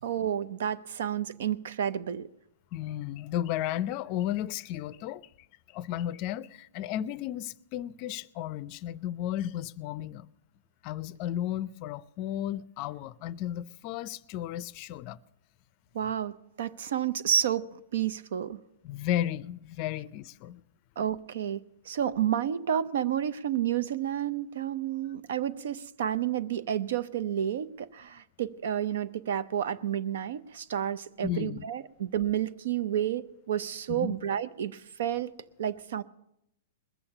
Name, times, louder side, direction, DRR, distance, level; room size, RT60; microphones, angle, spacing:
voice 1, 0.0-2.3 15.9-17.6 17.9-18.6 21.0-35.3 35.6-36.0, right 9 dB, 70° right, 0.6 m, -30 dB
voice 2, 2.7-5.3 5.7-10.3 10.8-15.2 18.8-20.6 31.2-31.6 33.9-34.2, left 12 dB, 40° left, 0.4 m, -34 dB
20.5 x 7.1 x 6.7 m
hypercardioid pair, 130°, 0 cm